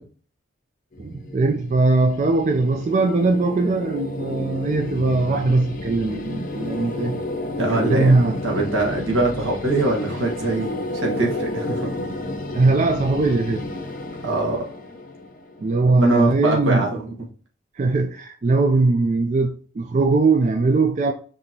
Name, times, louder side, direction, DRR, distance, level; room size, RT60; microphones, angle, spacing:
sound 1, 0.9-16.0, left 2 dB, 40° left, 0.6 m, -31 dB
voice 1, 1.0-7.2 7.7-8.4 12.5-13.6 15.6-16.9 17.8-21.1, right 3 dB, 35° right, 0.3 m, -20 dB
voice 2, 7.6-8.1 8.4-11.9 14.2-14.6 15.9-17.1, right 2 dB, 80° right, 1.3 m, -23 dB
5.3 x 2.9 x 2.7 m
head